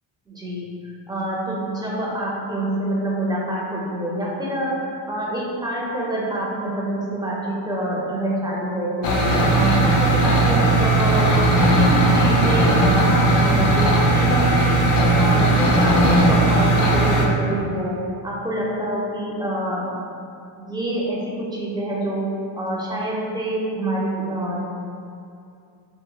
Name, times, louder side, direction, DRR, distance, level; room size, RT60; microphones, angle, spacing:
voice 1, 0.3-9.2 9.5-14.8 15.2-19.9 20.6-22.3 22.5-24.7, right 1 dB, 10° right, -5 dB, 0.4 m, -26 dB
sound 1, 9.0-17.2, right 2 dB, 45° left, 0.5 m, -17 dB
2.9 x 2.5 x 2.3 m, 2.5 s
cardioid pair, 100°, 45 cm